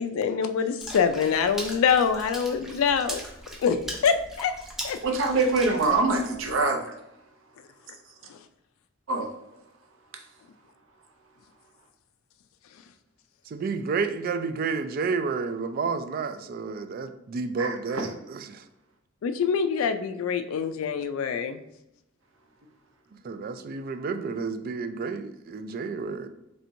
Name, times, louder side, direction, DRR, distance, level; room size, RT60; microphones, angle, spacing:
voice 1, 0.0-3.2 3.6-4.5 4.8-5.0 8.3-8.4 19.2-21.6, left 6 dB, 80° left, 0.3 m, -25 dB
Water / Splash splatter, 0.8-6.6, equal, ahead, 0.6 m, -40 dB
voice 2, 5.0-6.8 9.1-9.3 17.6-18.0, right 3 dB, 65° right, 0.7 m, -24 dB
voice 3, 13.5-18.6 23.2-26.3, right 4 dB, 45° right, 0.3 m, -30 dB
4.3 x 3.3 x 2.6 m
head